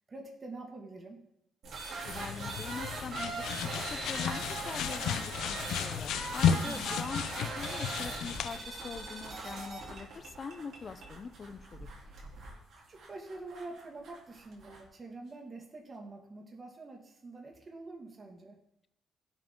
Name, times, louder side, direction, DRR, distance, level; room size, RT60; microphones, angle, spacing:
voice 1, 0.1-1.2 6.6-7.1 12.9-18.6, right 2 dB, 35° right, 0 dB, 2.2 m, -46 dB
sound 1, 1.6-14.8, right 3 dB, 65° right, 3.8 m, -41 dB
sound 2, 2.1-8.5, left 8 dB, 80° left, 0.6 m, -33 dB
voice 2, 2.1-3.4 3.7-7.2 7.5-11.9, left 5 dB, 40° left, 11 dB, 0.7 m, -43 dB
17.0 x 7.5 x 3.9 m, 0.79 s
cardioid pair, 90°, 0 cm